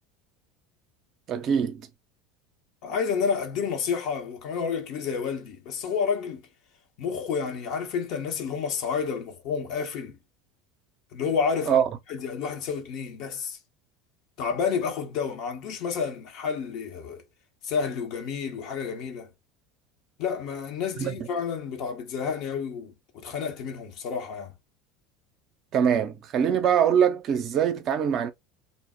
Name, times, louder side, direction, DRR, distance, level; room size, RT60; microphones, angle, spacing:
voice 1, 1.3-1.9 11.7-11.8 21.0-21.3 25.7-28.3, right 8 dB, 50° right, 0.5 m, -23 dB
voice 2, 2.8-6.5 7.0-10.2 11.1-11.8 12.1-13.6 14.4-17.2 17.6-19.3 20.2-24.5, left 6 dB, 60° left, 0.8 m, -30 dB
2.0 x 2.0 x 3.4 m
hypercardioid pair, 85°, 0 cm